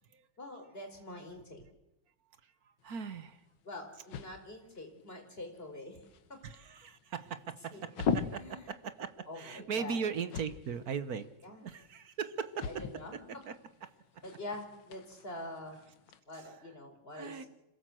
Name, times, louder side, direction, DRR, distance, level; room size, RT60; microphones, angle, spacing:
voice 1, 0.4-1.6 3.6-6.0 6.3-6.4 7.7-7.9 8.3-8.7 9.3-10.0 11.4-11.6 12.6-13.2 14.2-15.8 16.3-17.5, left 2 dB, 25° left, 4 dB, 4.2 m, -45 dB
voice 2, 2.4-3.4 6.4-12.8 13.1-13.2 13.5-13.6 17.1-17.4, right 6 dB, 50° right, 12 dB, 1.3 m, -39 dB
sound 1, 2.8-16.2, left 6 dB, 65° left, 1.9 m, -43 dB
26.5 x 17.0 x 7.7 m, 0.96 s
omnidirectional pair, 2.4 m